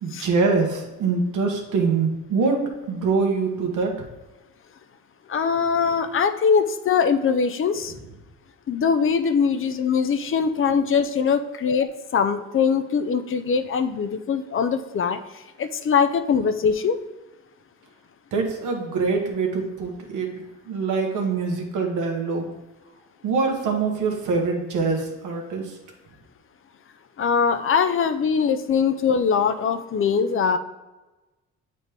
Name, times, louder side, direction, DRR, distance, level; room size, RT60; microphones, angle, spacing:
voice 1, 0.0-4.1 18.3-22.5 23.2-25.7, right 4 dB, 80° right, 2 dB, 1.4 m, -24 dB
voice 2, 5.3-7.9 8.7-17.0 27.2-30.6, left 6 dB, 45° left, 9 dB, 0.6 m, -22 dB
7.8 x 4.2 x 3.5 m, 1.1 s
cardioid pair, 90°, 30 cm